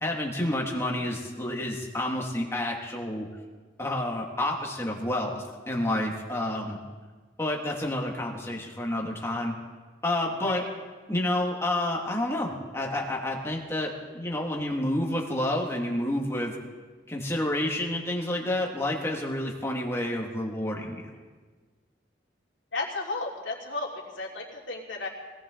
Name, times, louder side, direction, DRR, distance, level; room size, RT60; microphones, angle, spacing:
voice 1, 0.0-3.3 3.8-6.8 7.4-9.5 10.0-10.6 11.1-16.5 17.1-21.0, left 1 dB, 15° left, -1 dB, 2.1 m, -29 dB
voice 2, 22.7-25.1, left 3 dB, 80° left, -3 dB, 3.1 m, -34 dB
20.0 x 18.0 x 3.9 m, 1.4 s
head